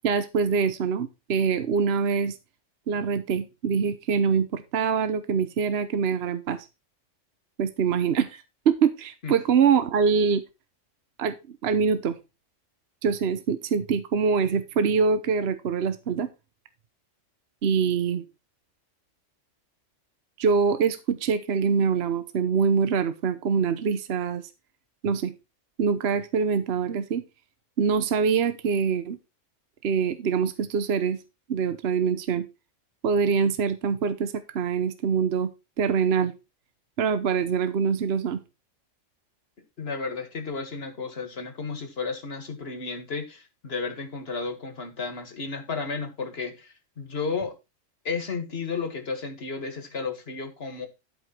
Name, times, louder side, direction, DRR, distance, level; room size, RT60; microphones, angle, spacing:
voice 1, 0.0-2.4 2.9-6.6 7.6-10.4 11.2-12.2 13.0-16.3 17.6-18.2 20.4-24.5 25.0-25.3 25.8-27.2 27.8-29.2 29.8-31.2 31.5-32.5 33.0-35.5 35.8-36.3 37.0-38.4, right 6 dB, 60° right, 1.1 m, -24 dB
voice 2, 39.8-47.5 48.0-50.9, left 4 dB, 55° left, 1.9 m, -33 dB
12.0 x 5.1 x 4.4 m
omnidirectional pair, 1.3 m